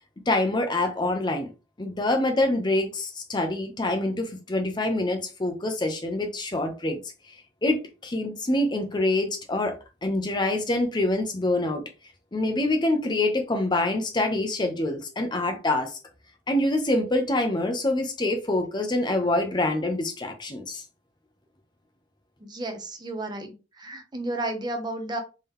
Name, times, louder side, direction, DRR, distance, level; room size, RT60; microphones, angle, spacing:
voice 1, 0.3-1.5 1.8-7.0 7.3-7.4 7.6-9.8 10.0-11.8 12.3-16.0 16.5-20.8, left 2 dB, 25° left, 0.6 m, -25 dB
voice 2, 22.4-25.2, right 2 dB, 20° right, 0.6 m, -32 dB
3.6 x 2.8 x 3.5 m
head